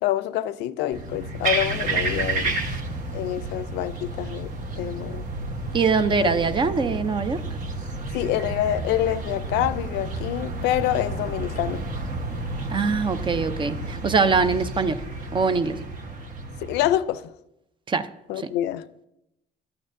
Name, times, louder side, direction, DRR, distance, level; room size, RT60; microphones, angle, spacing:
voice 1, 0.0-2.6 3.1-4.5 4.8-5.3 6.2-6.4 8.1-11.8 16.6-17.3 18.3-18.8, left 13 dB, 85° left, 0.5 m, -26 dB
sound 1, 0.9-16.9, right 2 dB, 50° right, 1.2 m, -31 dB
voice 2, 5.7-7.4 12.7-15.0 15.3-15.8 17.9-18.1 18.4-18.5, right 5 dB, 30° right, 0.5 m, -23 dB
12.5 x 8.7 x 2.6 m
cardioid pair, 110°, 17 cm